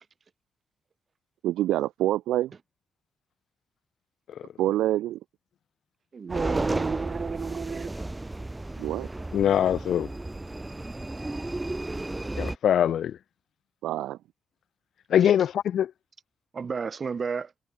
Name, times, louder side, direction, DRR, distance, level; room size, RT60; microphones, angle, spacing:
voice 1, 1.4-2.5 4.6-5.2 8.8-9.1 13.8-14.2, right 14 dB, 90° right, 1.1 m, -26 dB
voice 2, 6.1-7.9 16.5-17.5, right 5 dB, 50° right, 3.9 m, -31 dB
sound 1, 6.3-12.6, right 2 dB, 20° right, 2.7 m, -33 dB
voice 3, 9.3-10.1 12.3-13.2 15.1-15.9, left 10 dB, 75° left, 1.2 m, -23 dB
supercardioid pair, 60°, 0 cm